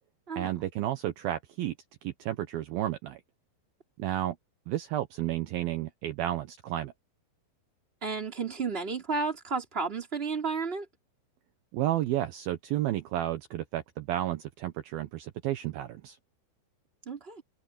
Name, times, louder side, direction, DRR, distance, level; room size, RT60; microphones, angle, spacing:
voice 1, 0.4-1.7 2.0-3.2 4.0-4.4 4.7-6.9 11.7-16.2, right 13 dB, 80° right, 2.1 m, -32 dB
voice 2, 8.0-10.8 17.0-17.4, right 4 dB, 15° right, 2.9 m, -32 dB
open air
omnidirectional pair, 5.7 m